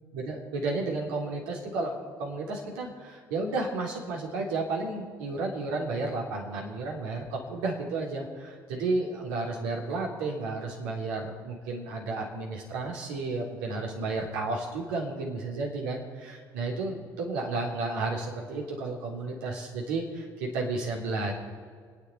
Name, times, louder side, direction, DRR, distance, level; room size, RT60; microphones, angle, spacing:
voice 1, 0.1-21.3, right 3 dB, 70° right, -1 dB, 3.1 m, -32 dB
29.5 x 9.9 x 4.2 m, 2.1 s
hypercardioid pair, 55°, 11 cm